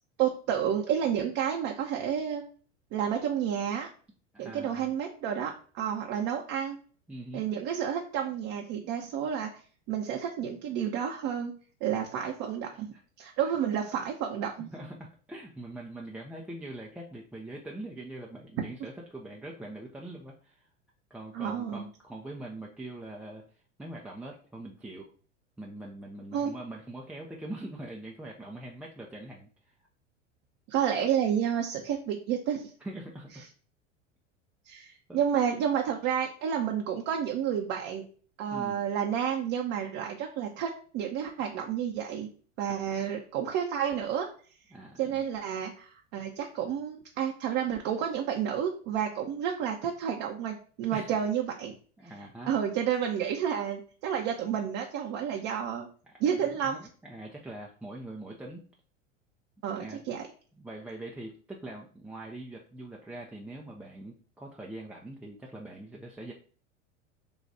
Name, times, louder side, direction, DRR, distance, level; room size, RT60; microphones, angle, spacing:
voice 1, 0.2-2.4 2.9-3.9 4.4-6.8 7.3-9.6 9.9-11.5 11.8-14.7 21.3-21.9 26.3-26.5 30.7-32.7 34.7-38.0 38.4-42.3 42.6-44.3 45.0-51.7 52.5-55.9 56.2-56.8 59.6-60.3, right 8 dB, 40° right, 1 dB, 0.7 m, -30 dB
voice 2, 4.3-4.9 7.1-7.4 12.9-13.0 13.4-13.5 14.7-20.7 21.1-23.4 23.8-25.1 25.6-29.5 32.8-33.4 35.1-35.2 38.5-38.8 42.8-43.0 44.7-45.2 50.9-51.1 52.0-52.5 56.1-56.2 56.6-58.6 59.7-60.0 60.5-66.3, right 1 dB, 5° right, -3 dB, 0.4 m, -43 dB
4.0 x 2.3 x 4.7 m, 0.42 s
hypercardioid pair, 90°, 38 cm